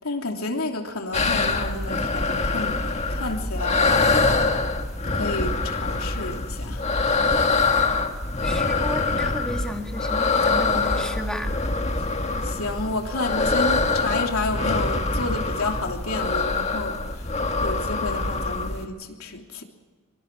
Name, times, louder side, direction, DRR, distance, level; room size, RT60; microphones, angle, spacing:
voice 1, 0.0-4.2 5.1-6.9 12.4-17.3 17.6-19.6, left 2 dB, 85° left, 3.1 m, -30 dB
sound 1, 1.1-18.9, left 3 dB, 30° left, 1.7 m, -24 dB
voice 2, 8.4-11.5, equal, 5° left, 2.1 m, -33 dB
25.0 x 24.5 x 4.7 m
head